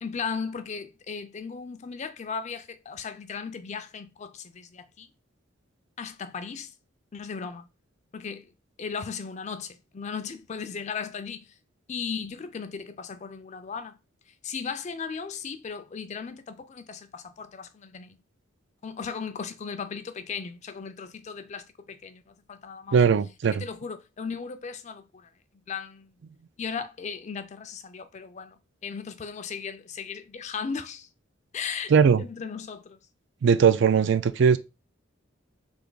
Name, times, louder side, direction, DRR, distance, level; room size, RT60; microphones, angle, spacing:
voice 1, 0.0-5.1 6.0-6.7 7.1-7.6 8.1-8.5 8.8-11.5 11.9-14.0 14.4-18.2 18.8-23.0 23.6-25.3 25.7-26.1 26.6-28.6 28.8-31.1 31.5-31.9 32.2-33.0, left 6 dB, 35° left, 0.4 m, -36 dB
voice 2, 22.9-23.6 31.9-32.2 33.4-34.6, right 6 dB, 60° right, 0.4 m, -19 dB
3.4 x 2.7 x 3.9 m
head